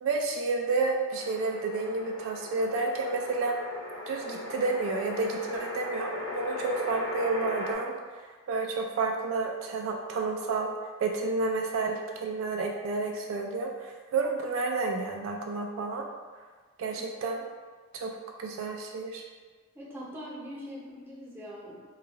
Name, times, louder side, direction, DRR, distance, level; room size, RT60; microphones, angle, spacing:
voice 1, 0.0-3.6 4.1-7.9 8.5-10.7 11.0-16.1 16.8-17.4 17.9-19.2, right 3 dB, 70° right, 1 dB, 0.3 m, -30 dB
sound 1, 1.1-7.7, left 2 dB, 75° left, 0.5 m, -38 dB
voice 2, 19.7-21.8, equal, 10° right, -7 dB, 0.6 m, -42 dB
3.1 x 2.3 x 2.4 m, 1.5 s
head